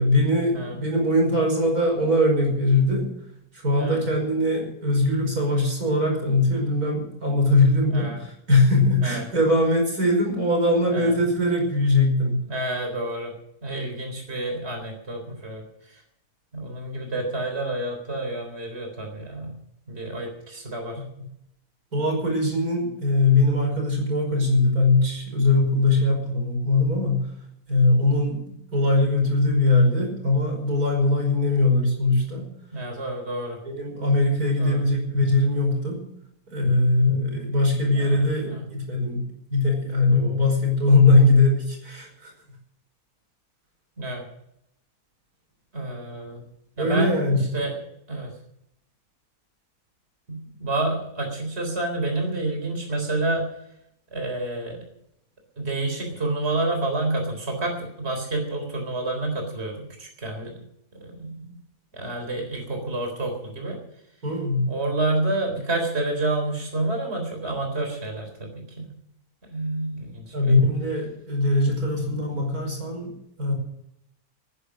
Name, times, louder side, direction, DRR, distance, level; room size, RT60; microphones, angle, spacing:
voice 1, 0.0-3.1 3.5-12.4 21.2-21.3 21.9-27.3 27.7-28.4 28.7-32.5 33.6-36.0 36.5-42.3 46.8-47.4 64.2-64.7 70.3-73.1 73.4-73.5, left 2 dB, 85° right, 2 dB, 5.8 m, -21 dB
voice 2, 12.5-13.3 13.6-16.0 16.5-19.5 19.9-21.0 32.7-33.6 34.6-34.8 37.9-38.6 40.1-40.4 44.0-44.2 45.7-46.4 46.8-47.2 47.5-47.7 48.1-48.3 50.3-53.4 54.1-54.8 55.6-60.5 61.0-61.5 61.9-63.8 64.7-68.9 69.4-70.5, right 2 dB, 45° right, 3 dB, 4.2 m, -29 dB
19.5 x 9.9 x 6.5 m, 0.76 s
omnidirectional pair, 1.5 m